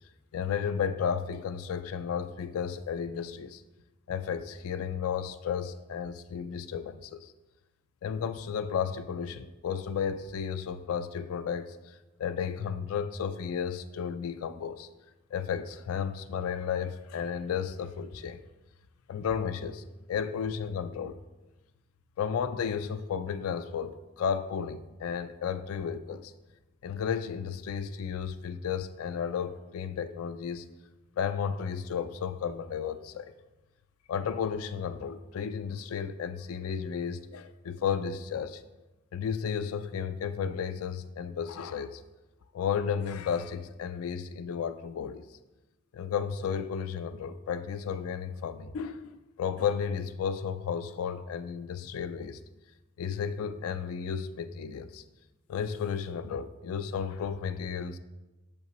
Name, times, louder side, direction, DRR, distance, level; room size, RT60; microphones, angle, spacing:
voice 1, 0.3-3.6 4.1-7.3 8.0-14.9 15.3-18.4 19.1-21.2 22.2-26.3 26.8-30.7 31.2-33.3 34.1-38.6 39.1-42.0 42.5-45.2 45.9-52.4 53.0-55.0 55.5-58.0, left 7 dB, 85° left, 0.3 m, -33 dB
6.7 x 5.4 x 3.0 m
head